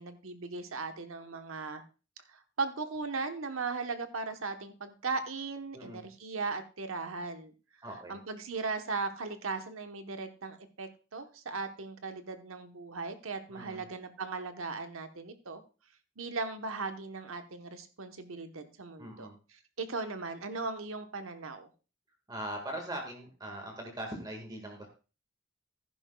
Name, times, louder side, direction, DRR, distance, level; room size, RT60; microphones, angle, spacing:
voice 1, 0.0-1.8 2.6-7.5 8.1-15.6 16.2-21.7, right 4 dB, 85° right, 8 dB, 1.1 m, -38 dB
voice 2, 5.7-6.1 7.8-8.2 13.5-13.9 19.0-19.4 22.3-24.9, right 1 dB, 20° right, 2 dB, 1.7 m, -41 dB
15.0 x 10.5 x 2.3 m, 0.33 s
head